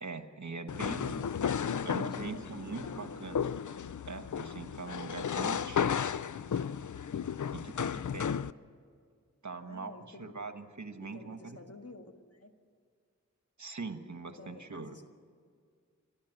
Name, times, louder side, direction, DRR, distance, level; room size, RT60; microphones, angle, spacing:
voice 1, 0.0-1.3 1.8-3.5 4.1-5.9 7.5-8.3 9.4-11.6 13.6-15.0, right 4 dB, 65° right, 8 dB, 1.4 m, -42 dB
sound 1, 0.7-8.5, left 8 dB, 75° left, 0.5 m, -34 dB
voice 2, 1.6-3.4 9.6-10.3 11.1-12.5 14.4-14.9, left 1 dB, 50° left, 5 dB, 1.7 m, -50 dB
29.0 x 11.5 x 8.0 m, 2.1 s
wide cardioid pair, 60°, 30 cm